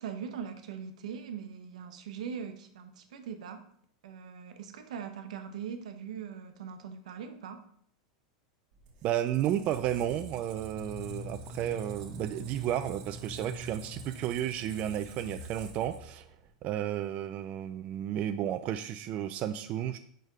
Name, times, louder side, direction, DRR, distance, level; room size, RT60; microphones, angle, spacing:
voice 1, 0.0-3.6 4.0-7.6, right 7 dB, 85° right, 7 dB, 0.8 m, -41 dB
Squeak, 8.7-16.5, right 1 dB, 55° right, 1.1 m, -44 dB
voice 2, 9.0-16.3 16.6-20.0, right 11 dB, 40° right, 9 dB, 0.4 m, -32 dB
5.2 x 4.5 x 4.7 m, 0.64 s
supercardioid pair, 130°, 4 cm